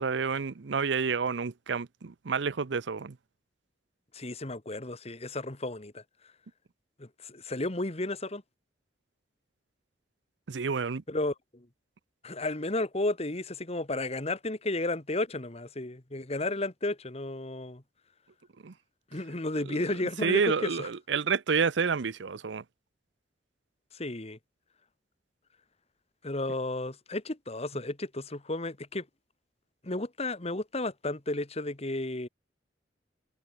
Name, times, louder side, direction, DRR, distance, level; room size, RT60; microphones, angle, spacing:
voice 1, 0.0-3.1 10.5-11.0 18.6-18.7 19.7-19.8 20.2-22.6, right 5 dB, 75° right, 0.6 m, -29 dB
voice 2, 4.1-6.0 7.0-8.4 11.1-11.7 12.2-17.8 19.1-20.9 23.9-24.4 26.2-29.0 29.8-32.3, left 2 dB, 35° left, 1.8 m, -33 dB
head